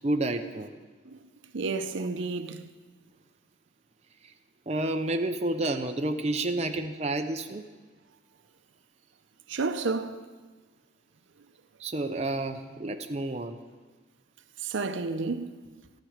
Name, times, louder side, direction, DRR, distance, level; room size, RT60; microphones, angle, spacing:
voice 1, 0.0-0.8 4.7-7.6 11.8-13.6, right 2 dB, 35° right, 0.5 m, -30 dB
voice 2, 1.5-2.7 9.5-10.3 14.6-15.5, right 4 dB, 75° right, 0.6 m, -31 dB
13.5 x 12.0 x 5.0 m
head